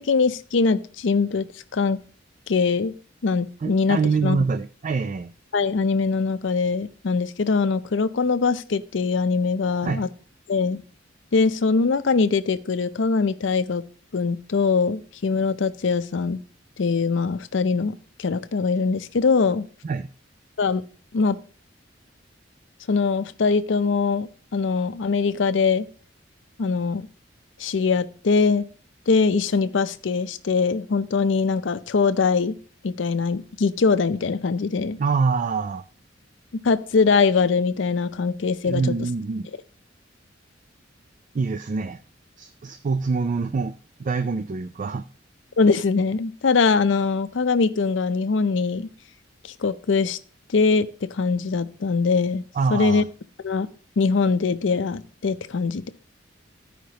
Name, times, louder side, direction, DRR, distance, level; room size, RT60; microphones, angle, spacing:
voice 1, 0.0-1.5 1.7-2.0 2.5-2.9 3.2-4.4 5.5-10.1 10.5-10.8 11.3-13.8 14.1-16.4 16.8-19.6 20.6-20.8 21.1-21.4 22.9-25.9 26.6-27.1 27.6-28.6 29.1-32.5 32.8-35.0 36.6-38.8 45.6-48.9 49.6-50.2 50.5-52.4 52.7-53.0 53.4-53.7 54.0-55.9, left 4 dB, 75° left, 13 dB, 0.5 m, -22 dB
voice 2, 3.6-5.3 9.8-10.1 19.8-20.1 35.0-35.8 38.6-39.5 41.3-42.0 42.4-43.7 44.0-45.0 52.5-53.0, right 4 dB, 40° right, 10 dB, 0.4 m, -25 dB
14.5 x 5.1 x 2.8 m, 0.41 s
head